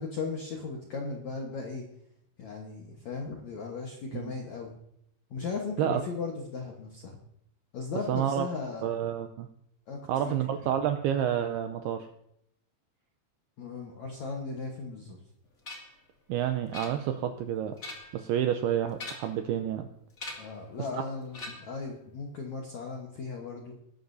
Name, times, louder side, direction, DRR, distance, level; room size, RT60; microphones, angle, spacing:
voice 1, 0.0-1.9 2.4-4.7 5.3-7.2 7.7-8.9 9.9-10.0 10.2-10.3 13.6-15.2 20.4-23.8, left 4 dB, 75° left, 0 dB, 1.6 m, -37 dB
voice 2, 8.1-8.5 8.8-9.5 10.1-12.1 16.3-17.8 18.1-19.9, right 10 dB, 90° right, 7 dB, 2.3 m, -29 dB
sound 1, 15.6-16.0 16.7-17.3 17.7-18.2 18.9-19.5 20.2-20.6 21.3-21.8, left 2 dB, 35° left, 1.4 m, -42 dB
21.0 x 12.0 x 2.7 m, 0.76 s
omnidirectional pair, 5.3 m